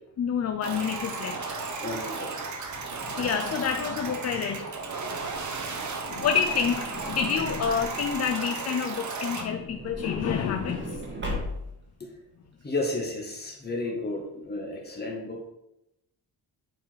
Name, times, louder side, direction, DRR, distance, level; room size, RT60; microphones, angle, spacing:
voice 1, 0.2-1.6 3.1-4.8 6.1-11.0, left 7 dB, 40° left, 6 dB, 0.5 m, -28 dB
sound 1, 0.6-9.4, right 4 dB, 45° right, 1.2 m, -34 dB
voice 2, 1.8-2.3 12.0-12.1 12.6-15.4, left 2 dB, 25° left, 0 dB, 1.8 m, -32 dB
Truck / Door, 5.2-8.3 9.4-11.9 12.6-12.7 12.9-13.0, equal, 30° right, 1.7 m, -38 dB
8.8 x 4.8 x 4.7 m, 0.85 s
wide cardioid pair, 160°, 40 cm